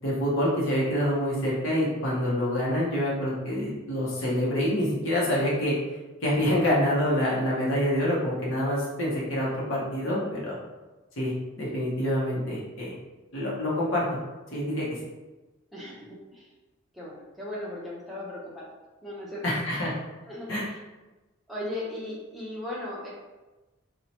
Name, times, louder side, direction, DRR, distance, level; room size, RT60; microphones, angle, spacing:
voice 1, 0.0-5.8 6.2-10.6 11.2-12.9 13.3-14.1 14.5-14.9 19.4-19.9 20.5-20.6, equal, 60° left, -6 dB, 0.8 m, -26 dB
voice 2, 15.7-16.5 16.9-18.7 19.0-19.6 20.3-20.8 21.5-23.1, left 1 dB, ahead, -7 dB, 0.5 m, -37 dB
2.7 x 2.1 x 2.8 m, 1.1 s
head